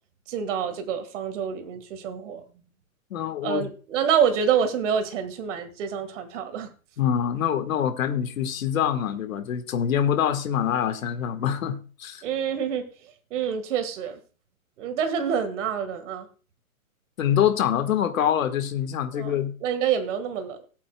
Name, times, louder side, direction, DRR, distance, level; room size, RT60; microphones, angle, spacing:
voice 1, 0.3-2.4 3.4-6.7 12.2-12.9 13.3-14.2 14.8-16.3 19.1-19.3 19.6-20.7, right 8 dB, 60° right, 1.8 m, -27 dB
voice 2, 3.1-3.7 7.0-12.2 17.2-19.5, left 9 dB, 70° left, 1.8 m, -25 dB
19.0 x 8.5 x 2.3 m
hypercardioid pair, 130°, 42 cm